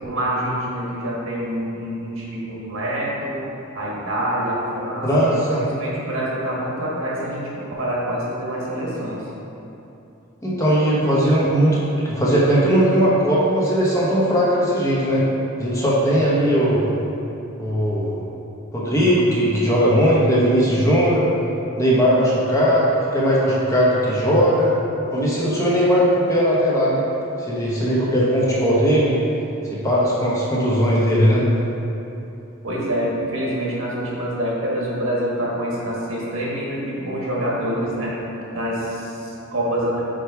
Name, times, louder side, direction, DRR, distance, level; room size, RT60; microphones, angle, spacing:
voice 1, 0.0-3.4 3.7-9.3 32.6-38.1 38.5-40.0, right 1 dB, 70° right, -5 dB, 1.4 m, -26 dB
voice 2, 5.0-5.6 10.4-15.2 15.6-16.9 17.6-18.2 18.7-21.3 21.8-24.7 25.1-27.0 27.5-29.2 29.7-31.4, equal, 15° left, -7 dB, 0.9 m, -18 dB
5.1 x 4.5 x 4.6 m, 2.8 s
head